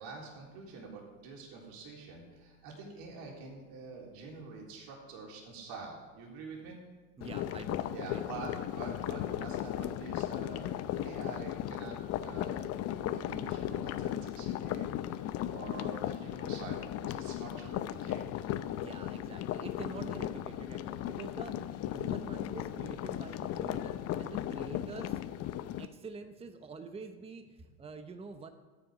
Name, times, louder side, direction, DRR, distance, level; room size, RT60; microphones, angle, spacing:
voice 1, 0.0-2.2 2.6-6.8 7.9-11.9 12.2-14.9 15.5-18.2, right 4 dB, 55° right, -1 dB, 3.7 m, -46 dB
sound 1, 7.2-25.9, left 12 dB, 35° left, 0.6 m, -36 dB
voice 2, 7.2-8.2 18.7-25.2 25.8-28.5, right 4 dB, 15° right, 8 dB, 0.9 m, -46 dB
13.5 x 9.5 x 5.0 m, 1.4 s
hypercardioid pair, 100°, 42 cm